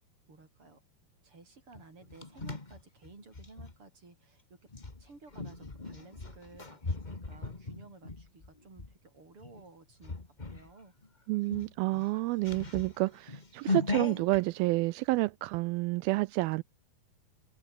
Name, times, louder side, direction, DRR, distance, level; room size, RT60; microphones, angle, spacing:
voice 1, 0.3-0.8 1.2-4.7 5.0-10.9, right 3 dB, 30° right, 7.0 m, -55 dB
sound 1, 1.7-3.7 4.7-8.9 9.4-9.7 10.0-10.7 11.0-11.1 11.4-14.4, left 3 dB, 60° left, 0.4 m, -38 dB
voice 2, 11.3-16.6, right 22 dB, 85° right, 2.2 m, -29 dB
omnidirectional pair, 4.7 m